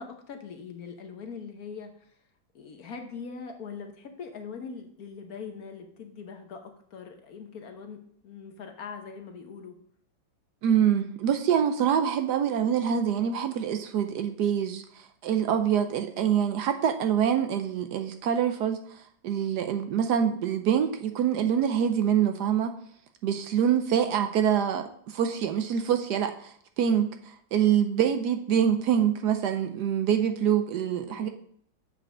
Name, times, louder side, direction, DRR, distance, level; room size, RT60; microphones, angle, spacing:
voice 1, 0.0-2.1 2.5-9.8 31.0-31.3, left 5 dB, 60° left, 5 dB, 1.2 m, -42 dB
voice 2, 10.6-22.7 23.2-31.3, right 8 dB, 70° right, 7 dB, 1.1 m, -25 dB
7.5 x 5.2 x 6.0 m, 0.64 s
omnidirectional pair, 2.0 m